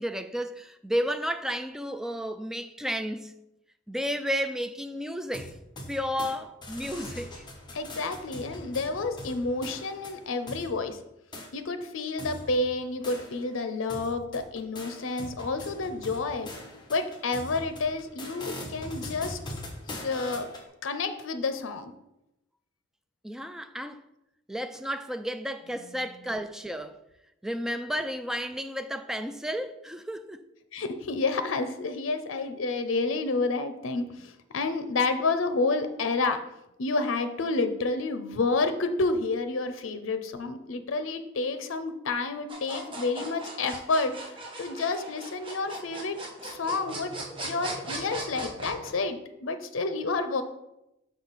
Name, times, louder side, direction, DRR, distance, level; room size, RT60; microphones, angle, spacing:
voice 1, 0.0-3.3 3.9-5.5 5.9-7.4 23.2-24.0 24.5-27.0 27.4-30.4, equal, 5° right, 0.3 m, -32 dB
sound 1, 5.3-6.3 6.6-10.7 11.3-11.5 12.2-13.6 13.9-20.6, left 1 dB, 25° left, 1.1 m, -42 dB
voice 2, 7.7-11.0 11.5-16.5 16.9-19.4 19.9-20.5 20.8-21.9 30.7-36.5 36.8-44.2 44.6-47.2 47.4-50.4, left 3 dB, 80° left, 0.6 m, -29 dB
sound 2, 42.5-48.9, right 2 dB, 25° right, 1.2 m, -39 dB
6.2 x 5.5 x 4.0 m
head